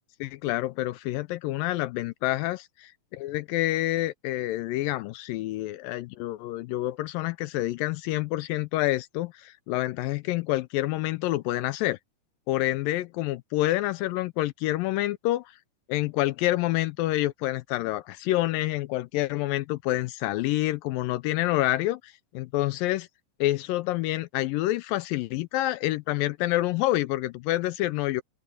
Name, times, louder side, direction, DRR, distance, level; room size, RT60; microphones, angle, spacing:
voice 1, 0.2-12.0 12.5-15.6 15.9-23.1 23.4-28.2, left 16 dB, 80° left, 2.1 m, -28 dB
open air
omnidirectional pair, 4.4 m